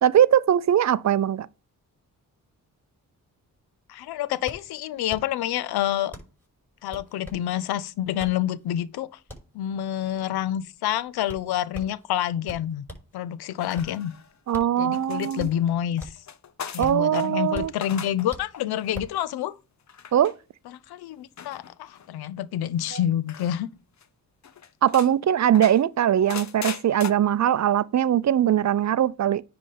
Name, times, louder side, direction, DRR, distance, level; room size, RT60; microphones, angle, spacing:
voice 1, 0.0-1.5 14.5-15.5 16.8-17.7 20.1-20.3 24.8-29.4, right 10 dB, 50° right, 0.5 m, -21 dB
voice 2, 3.9-6.1 6.8-9.1 9.5-12.9 13.1-14.1 14.8-16.2 16.7-19.5 20.7-23.7, left 11 dB, 80° left, 0.6 m, -28 dB
sound 1, 3.9-13.2 13.5-16.4 16.6-19.2, left 1 dB, 5° left, 5.2 m, -42 dB
sound 2, 13.6-14.5 14.9-17.3 17.7-18.3 18.5-18.9 19.9-20.3 21.4-22.1 23.3-23.6 24.0-24.1 24.4-25.1 25.5-27.1, left 7 dB, 45° left, 0.8 m, -39 dB
9.8 x 3.4 x 5.4 m
supercardioid pair, 55°, 37 cm